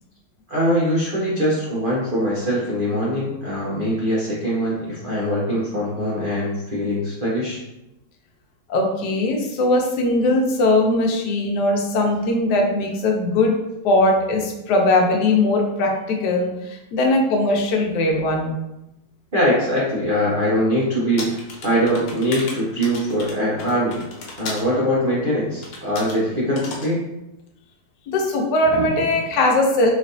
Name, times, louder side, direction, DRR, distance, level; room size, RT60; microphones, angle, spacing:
voice 1, 0.5-7.6 19.3-24.0 24.4-27.0, equal, 40° right, -7 dB, 0.7 m, -22 dB
voice 2, 8.7-13.5 13.8-18.5 28.1-29.9, left 2 dB, 70° left, 2 dB, 1.2 m, -20 dB
sound 1, 21.2-24.7 25.6-26.2 26.6-26.9, left 3 dB, 90° left, 1.5 m, -35 dB
4.0 x 3.1 x 2.6 m, 0.90 s
omnidirectional pair, 2.0 m